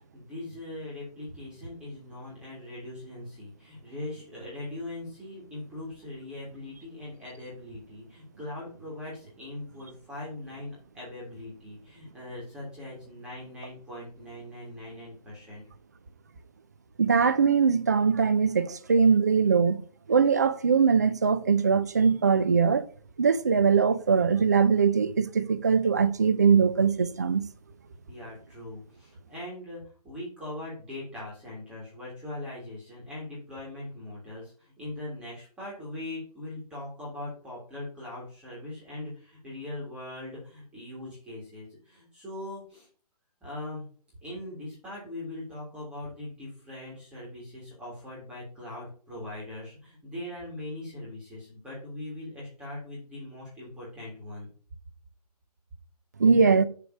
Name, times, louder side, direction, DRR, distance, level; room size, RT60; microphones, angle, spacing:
voice 1, 0.1-15.6 28.1-42.9 43.4-43.9 44.2-54.5, left 1 dB, 5° right, 1.9 m, -41 dB
voice 2, 17.0-19.8 20.1-22.9 23.2-27.4 56.2-56.6, right 6 dB, 25° right, 0.4 m, -22 dB
7.1 x 3.4 x 6.0 m
hypercardioid pair, 165°, 21 cm